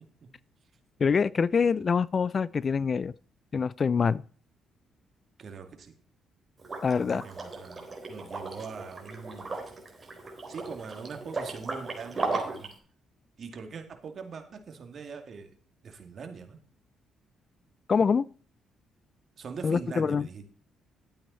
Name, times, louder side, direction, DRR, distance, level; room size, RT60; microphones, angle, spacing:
voice 1, 1.0-3.1 3.5-4.2 6.8-7.2 17.9-18.3 19.6-20.3, left 5 dB, 40° left, 0.4 m, -25 dB
voice 2, 5.4-5.9 7.0-9.5 10.5-12.7 13.4-15.5 15.8-16.6 19.4-20.4, right 5 dB, 50° right, 2.3 m, -42 dB
Liquid, 6.6-12.7, right 3 dB, 35° right, 3.8 m, -36 dB
12.5 x 8.6 x 4.2 m
cardioid pair, 90°, 0 cm